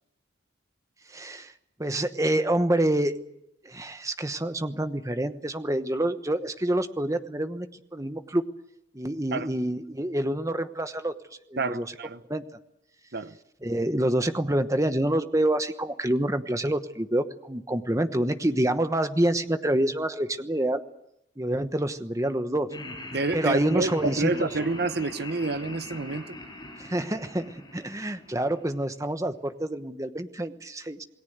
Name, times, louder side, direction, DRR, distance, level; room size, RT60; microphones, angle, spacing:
voice 1, 1.1-1.5 1.8-3.2 3.6-7.7 7.9-8.4 8.9-11.1 11.5-11.9 12.3-12.4 13.6-20.8 21.4-22.7 23.3-24.5 26.8-31.0, right 1 dB, 15° right, 1.1 m, -27 dB
voice 2, 11.6-12.2 13.1-13.3 23.1-26.4, right 3 dB, 50° right, 0.9 m, -28 dB
Laughter, 22.7-28.9, left 1 dB, 20° left, 6.4 m, -41 dB
27.5 x 19.5 x 8.1 m
head